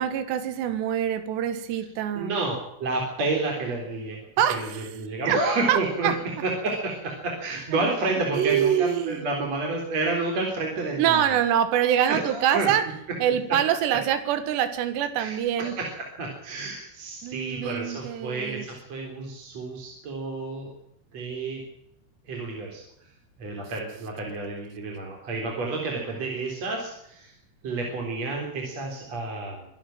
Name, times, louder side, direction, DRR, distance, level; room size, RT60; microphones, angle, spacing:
voice 1, 0.0-2.4 4.4-4.9 5.3-5.4 5.7-6.2 7.7-8.0 8.3-9.3 11.0-12.9 13.2-15.8 17.2-18.7, right 10 dB, 80° right, 10 dB, 3.8 m, -25 dB
voice 2, 2.1-11.3 12.1-12.7 15.2-20.7 21.1-21.6 22.3-22.8 23.4-27.3 27.6-29.7, right 3 dB, 40° right, 0 dB, 4.6 m, -30 dB
25.0 x 11.5 x 8.9 m, 0.76 s
omnidirectional pair, 4.9 m